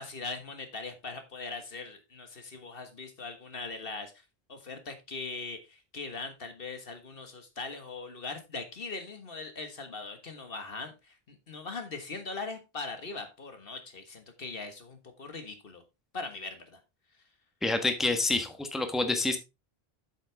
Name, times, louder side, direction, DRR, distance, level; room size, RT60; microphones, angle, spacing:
voice 1, 0.0-4.2 4.5-15.8 16.1-16.8, left 3 dB, 65° left, 7 dB, 1.6 m, -40 dB
voice 2, 17.6-19.4, left 3 dB, ahead, 7 dB, 1.1 m, -28 dB
8.3 x 7.7 x 3.4 m, 0.25 s
omnidirectional pair, 1.0 m